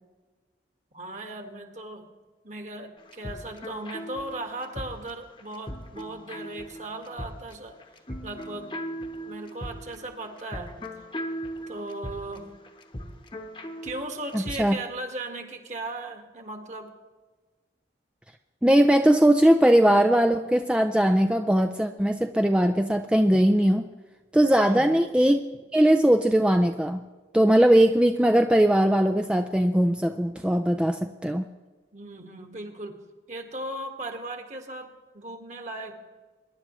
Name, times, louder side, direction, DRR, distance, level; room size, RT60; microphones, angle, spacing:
voice 1, 0.9-2.1 2.4-7.8 8.2-8.7 9.2-10.7 11.7-12.5 13.8-16.9 24.5-24.9 31.9-33.0 33.3-35.9, right 2 dB, 40° right, 4 dB, 1.7 m, -37 dB
sound 1, 3.0-14.6, equal, 30° left, 1.1 m, -39 dB
voice 2, 14.3-14.8 18.6-23.9 24.3-25.4 25.7-27.0 27.3-31.5, right 1 dB, 5° right, 5 dB, 0.4 m, -20 dB
23.0 x 11.0 x 3.1 m, 1.3 s
head